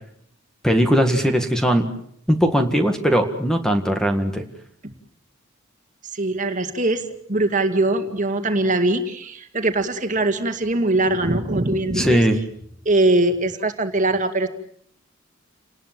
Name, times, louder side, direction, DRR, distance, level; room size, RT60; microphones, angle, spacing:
voice 1, 0.6-1.9 2.3-4.4 11.9-12.4, equal, 5° left, 6 dB, 1.9 m, -19 dB
voice 2, 6.1-7.0 7.3-12.2 12.9-14.5, right 2 dB, 40° right, 7 dB, 2.1 m, -21 dB
29.5 x 19.5 x 7.6 m, 0.68 s
head